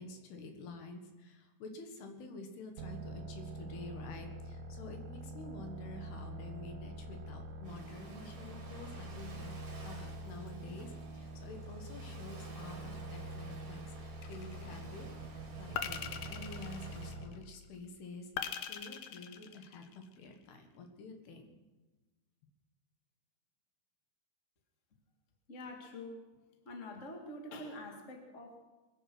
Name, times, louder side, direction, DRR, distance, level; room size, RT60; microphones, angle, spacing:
voice 1, 0.0-9.5 9.8-18.3 18.7-21.5, left 3 dB, 70° left, 5 dB, 3.5 m, -49 dB
sound 1, 2.8-17.5, right 1 dB, 70° right, 2.7 m, -45 dB
Ocean, 7.6-17.1, right 3 dB, 40° right, 2.9 m, -55 dB
sound 2, 14.2-14.8 15.8-17.4 18.4-20.1, left 9 dB, 90° left, 1.8 m, -41 dB
voice 2, 25.5-26.2 26.6-28.6, left 1 dB, 35° left, 3 dB, 1.2 m, -46 dB
22.0 x 10.5 x 6.2 m, 1.2 s
omnidirectional pair, 4.9 m